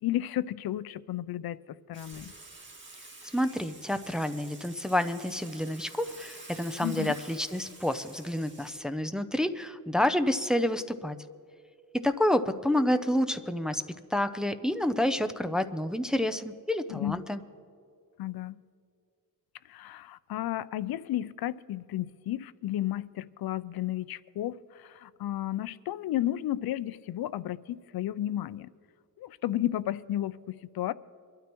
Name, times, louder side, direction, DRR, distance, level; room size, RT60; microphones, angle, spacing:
voice 1, 0.0-1.6 1.9-2.3 6.8-7.1 16.9-17.2 18.2-18.6 19.7-28.7 29.2-30.9, left 13 dB, 90° left, 0.5 m, -33 dB
Water / Water tap faucet / Sink (filling or washing), 1.9-8.7, right 3 dB, 30° right, 2.0 m, -49 dB
voice 2, 3.3-11.2 11.9-13.8 14.1-17.4, left 1 dB, ahead, 0.5 m, -29 dB
24.5 x 12.5 x 3.0 m
wide cardioid pair, 140°, 35 cm